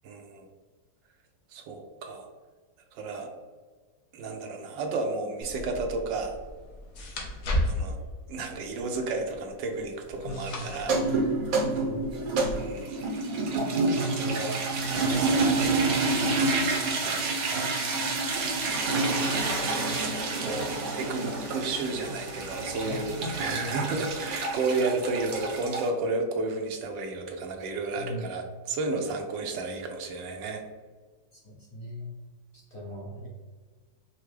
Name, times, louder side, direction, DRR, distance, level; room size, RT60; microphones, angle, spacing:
voice 1, 0.0-0.5 1.5-2.3 2.9-3.3 4.1-6.4 7.7-8.0 8.3-11.3 12.5-13.0 14.0-14.6 14.9-16.0 17.0-17.7 20.0-20.7 20.9-30.6, right 3 dB, 80° right, 4 dB, 1.3 m, -32 dB
sound 1, 5.4-12.5, left 1 dB, 65° left, 1.3 m, -36 dB
voice 2, 10.2-10.6 11.6-12.1 23.2-23.3 28.0-28.2 31.5-32.1 32.7-33.3, left 1 dB, 45° left, -6 dB, 0.8 m, -39 dB
sound 2, 10.8-25.9, right 3 dB, 65° right, 1.0 m, -28 dB
sound 3, 18.3-24.6, equal, 5° left, 0.6 m, -50 dB
5.6 x 2.1 x 3.2 m, 1.4 s
omnidirectional pair, 2.0 m